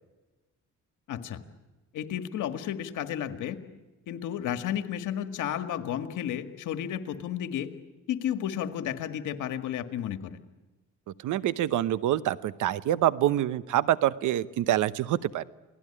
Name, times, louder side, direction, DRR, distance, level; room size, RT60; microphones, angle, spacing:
voice 1, 1.1-1.4 1.9-3.6 4.1-7.7 8.1-10.4, left 10 dB, 85° left, 8 dB, 1.9 m, -32 dB
voice 2, 11.2-15.4, right 12 dB, 80° right, 16 dB, 1.0 m, -26 dB
28.5 x 18.5 x 10.0 m, 1.2 s
cardioid pair, 90°, 30 cm